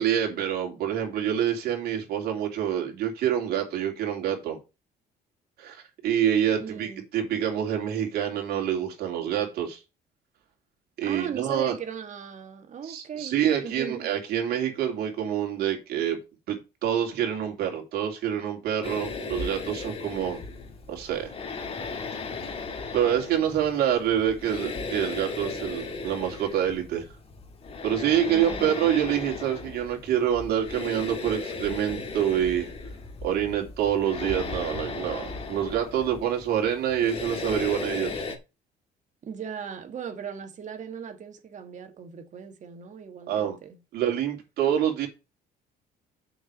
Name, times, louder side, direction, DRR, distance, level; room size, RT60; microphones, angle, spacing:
voice 1, 0.0-4.6 5.6-9.8 11.0-11.7 12.9-16.2 16.5-20.4 20.9-21.3 22.9-27.1 27.8-32.7 33.2-38.2 43.3-43.6 43.9-45.1, right 10 dB, 70° right, 3.2 m, -26 dB
voice 2, 6.6-7.1 11.0-14.1 28.3-28.8 34.2-34.5 39.2-43.8, right 7 dB, 45° right, 1.9 m, -38 dB
sound 1, 18.8-38.4, left 4 dB, 35° left, 2.0 m, -36 dB
7.1 x 5.0 x 7.1 m
cardioid pair, 110°, 17 cm